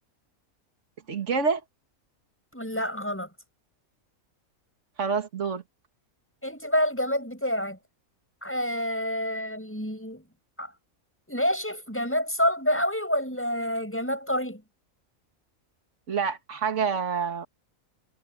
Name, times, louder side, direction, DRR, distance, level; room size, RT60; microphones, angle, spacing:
voice 1, 1.1-1.6 5.0-5.6 16.1-17.5, right 5 dB, 55° right, 2.2 m, -27 dB
voice 2, 2.5-3.3 6.4-7.8 8.4-10.2 10.6-10.7 11.3-14.6, equal, 10° left, 7.8 m, -28 dB
omnidirectional pair, 1.5 m